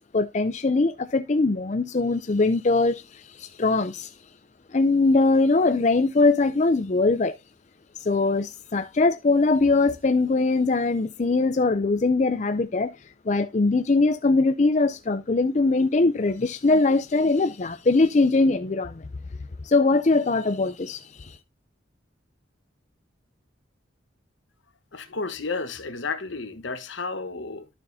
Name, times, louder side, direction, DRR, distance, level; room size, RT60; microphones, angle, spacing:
voice 1, 0.0-4.1 4.7-7.4 8.0-13.0 13.3-19.0 19.6-21.4, left 3 dB, 35° left, 0.4 m, -22 dB
voice 2, 24.9-27.7, left 4 dB, 75° left, 1.1 m, -32 dB
12.0 x 6.8 x 2.7 m
head